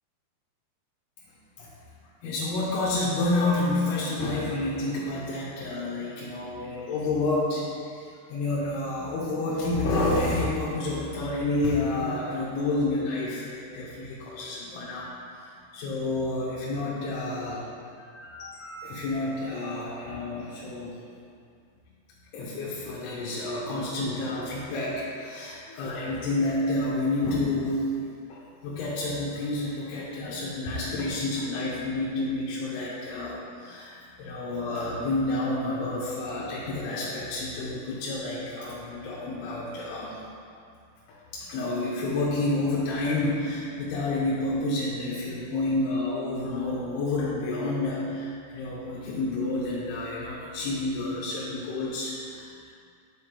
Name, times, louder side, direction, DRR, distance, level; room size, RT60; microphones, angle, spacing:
voice 1, 2.2-7.6 7.9-17.6 18.0-21.0 22.3-27.9 28.3-40.2 41.1-52.7, left 2 dB, 75° left, -8 dB, 2.8 m, -29 dB
9.0 x 4.9 x 3.4 m, 2.3 s
omnidirectional pair, 4.8 m